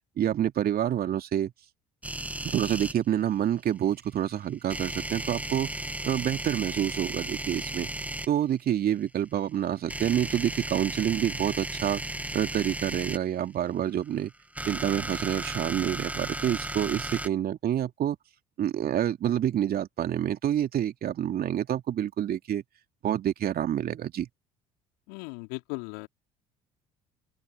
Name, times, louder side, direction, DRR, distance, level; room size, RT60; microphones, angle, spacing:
voice 1, 0.2-1.5 2.4-5.7 6.0-7.9 8.3-12.0 12.3-14.3 14.7-18.2 18.6-22.6 23.0-24.3, right 10 dB, 50° right, 2.7 m, -28 dB
sound 1, 2.0-2.9 4.7-8.3 9.9-13.2 14.3-17.3, right 1 dB, 5° right, 1.4 m, -35 dB
voice 2, 25.1-26.1, left 33 dB, 70° left, 4.3 m, -37 dB
open air
hypercardioid pair, 55°, 20 cm